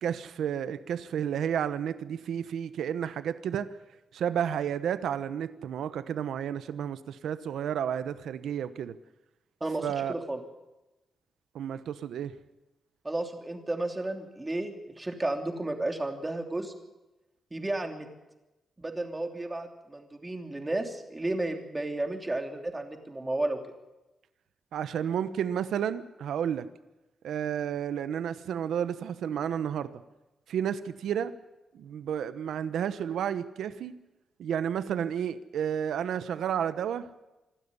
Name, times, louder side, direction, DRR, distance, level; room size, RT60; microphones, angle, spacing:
voice 1, 0.0-3.7 4.1-9.0 9.8-10.1 11.5-12.3 24.7-26.7 27.2-29.9 30.5-31.3 31.7-33.9 34.4-37.1, right 9 dB, 80° right, 13 dB, 1.0 m, -31 dB
voice 2, 9.6-10.4 13.0-16.7 17.5-18.1 18.8-23.6, right 2 dB, 15° right, 4 dB, 3.0 m, -33 dB
26.5 x 12.5 x 9.8 m, 1.0 s
cardioid pair, 125°, 0 cm